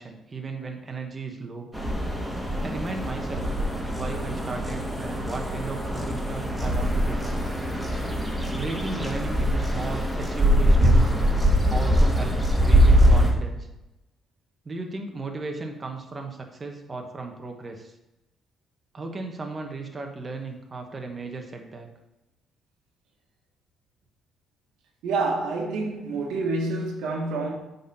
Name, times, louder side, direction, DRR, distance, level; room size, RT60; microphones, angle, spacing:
voice 1, 0.0-1.7 2.6-3.5 3.9-7.4 8.5-11.2 11.7-13.7 14.6-17.9 18.9-21.9, right 3 dB, 30° right, 1.2 m, -35 dB
sound 1, 1.7-13.3, equal, 5° right, 2.2 m, -22 dB
voice 2, 25.0-27.5, right 3 dB, 90° right, 1.8 m, -27 dB
8.2 x 4.2 x 5.6 m
cardioid pair, 90°, 0 cm